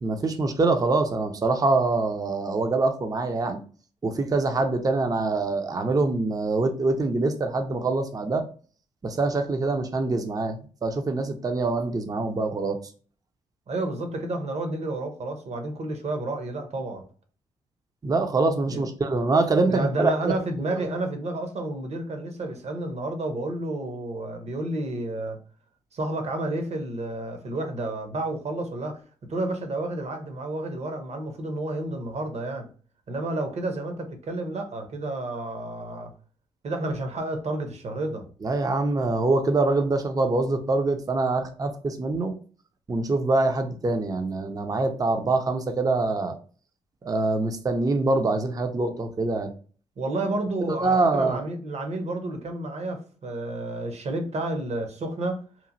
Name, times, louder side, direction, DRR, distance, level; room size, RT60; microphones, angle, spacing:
voice 1, 0.0-3.6 4.0-8.4 9.0-12.8 18.0-20.3 38.4-42.3 42.9-46.3 47.0-49.5 50.6-51.4, right 3 dB, 25° right, 0.5 m, -24 dB
voice 2, 13.7-17.0 18.7-18.8 19.7-25.4 25.9-29.0 29.3-32.7 33.1-36.1 36.6-38.3 50.0-55.4, right 2 dB, 45° right, 0.8 m, -30 dB
3.0 x 2.4 x 2.5 m
hypercardioid pair, 45°, 15 cm